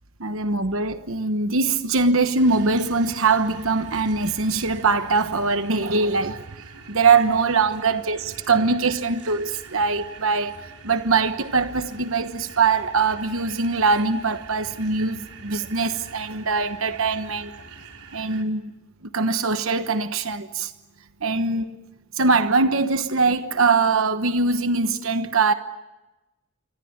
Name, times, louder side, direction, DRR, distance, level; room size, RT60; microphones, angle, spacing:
voice 1, 0.2-6.4 6.9-17.5 18.1-18.6 19.1-20.7 21.2-21.7 22.2-25.5, right 4 dB, 60° right, 1.2 m, -22 dB
sound 1, 2.4-18.4, right 4 dB, 90° right, 4.1 m, -44 dB
27.0 x 25.0 x 8.7 m
head